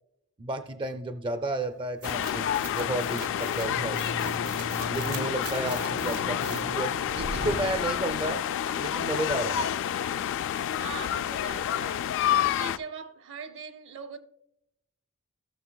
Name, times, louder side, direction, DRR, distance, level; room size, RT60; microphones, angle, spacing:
voice 1, 0.4-4.0 4.9-8.5 8.8-9.6, right 2 dB, 20° right, 0.4 m, -32 dB
sound 1, 2.0-12.8, left 10 dB, 55° left, 0.3 m, -29 dB
sound 2, 2.0-8.4, right 1 dB, 90° right, 1.5 m, -38 dB
voice 2, 10.8-12.1 12.4-14.2, right 5 dB, 60° right, 0.7 m, -41 dB
16.5 x 6.7 x 2.2 m
head